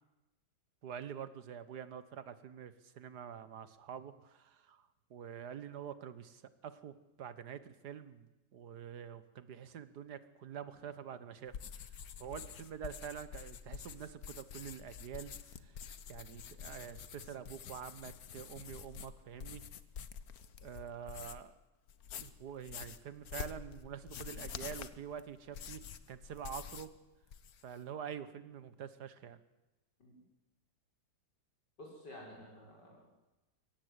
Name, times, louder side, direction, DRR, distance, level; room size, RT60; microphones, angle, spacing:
voice 1, 0.8-11.6 12.2-15.3 15.6-15.7 16.1-19.6 20.6-21.5 22.2-25.8 26.1-26.9 27.6-29.4, right 8 dB, 70° right, 14 dB, 1.7 m, -46 dB
sound 1, 11.5-21.5 21.9-27.0 27.2-27.8, left 8 dB, 60° left, 1.4 m, -48 dB
voice 2, 31.8-33.1, left 1 dB, 80° left, -1 dB, 7.0 m, -52 dB
23.0 x 17.5 x 8.2 m, 1.0 s
omnidirectional pair, 1.8 m